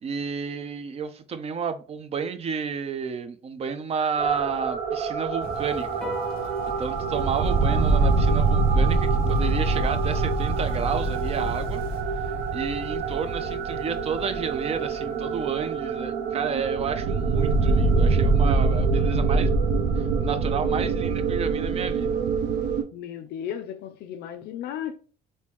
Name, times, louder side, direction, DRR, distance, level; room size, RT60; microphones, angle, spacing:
voice 1, 0.0-5.9 6.6-11.8 12.2-19.6 20.0-22.2, right 6 dB, 40° right, 0.5 m, -31 dB
sound 1, 4.2-22.8, right 4 dB, 85° right, 0.6 m, -24 dB
Rain, 5.4-12.0, right 2 dB, 65° right, 1.7 m, -43 dB
sound 2, 6.0-12.7, equal, 5° left, 0.8 m, -43 dB
voice 2, 22.9-25.0, left 9 dB, 75° left, 0.4 m, -35 dB
3.0 x 2.7 x 3.4 m
cardioid pair, 110°, 17 cm